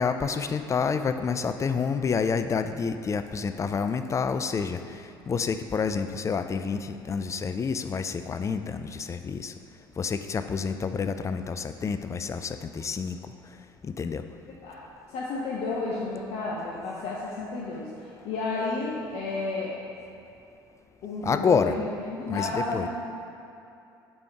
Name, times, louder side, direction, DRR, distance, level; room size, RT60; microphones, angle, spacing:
voice 1, 0.0-5.0 5.3-9.5 10.0-13.2 13.8-14.2 21.2-21.8 22.3-22.9, left 5 dB, 25° left, 10 dB, 0.4 m, -28 dB
voice 2, 15.1-19.8 21.0-22.9, left 3 dB, 60° left, -5 dB, 0.8 m, -32 dB
5.3 x 4.4 x 4.7 m, 2.8 s
hypercardioid pair, 60°, 12 cm